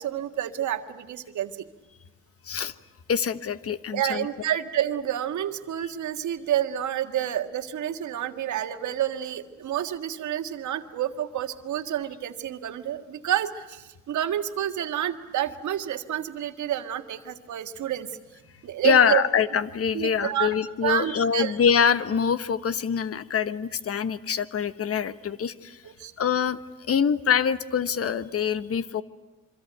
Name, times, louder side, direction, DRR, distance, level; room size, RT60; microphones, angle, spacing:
voice 1, 0.0-1.7 3.9-18.1 18.6-19.2 19.9-20.6 20.8-21.5 25.8-26.1, right 11 dB, 70° right, 7 dB, 1.7 m, -29 dB
voice 2, 3.1-4.3 18.8-25.8 26.2-26.6 26.9-29.0, left 7 dB, 50° left, 14 dB, 1.2 m, -24 dB
26.0 x 24.5 x 9.3 m, 1.0 s
cardioid pair, 90°, 30 cm